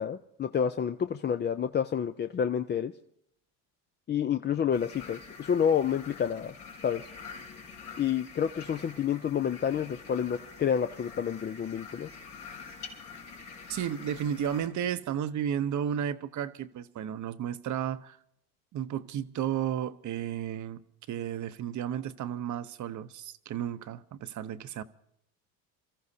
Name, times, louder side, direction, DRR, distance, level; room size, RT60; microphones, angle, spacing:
voice 1, 0.0-2.9 4.1-6.5 6.8-7.1 8.0-12.1, left 8 dB, 25° left, 0.5 m, -29 dB
sound 1, 4.7-14.7, left 5 dB, 85° left, 4.6 m, -46 dB
voice 2, 13.7-18.2 18.7-20.8 21.1-24.8, right 9 dB, 50° right, 0.9 m, -33 dB
27.5 x 14.0 x 2.8 m
supercardioid pair, 85°, 39 cm